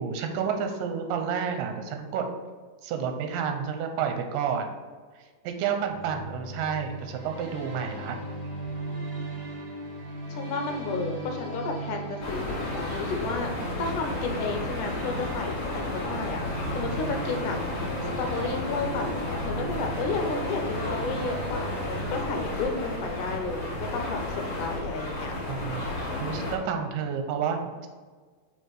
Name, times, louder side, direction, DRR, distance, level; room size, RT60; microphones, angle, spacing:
voice 1, 0.0-2.3 2.8-4.7 5.4-8.2 25.5-25.9 26.2-27.9, right 7 dB, 80° right, 5 dB, 2.3 m, -30 dB
sound 1, 5.9-23.6, right 1 dB, 50° right, 2.7 m, -38 dB
voice 2, 10.4-17.6 18.2-25.3, left 4 dB, 75° left, 4 dB, 2.1 m, -32 dB
sound 2, 12.2-26.6, left 2 dB, 55° left, 2.7 m, -33 dB
5.2 x 4.6 x 4.6 m, 1.5 s
omnidirectional pair, 4.0 m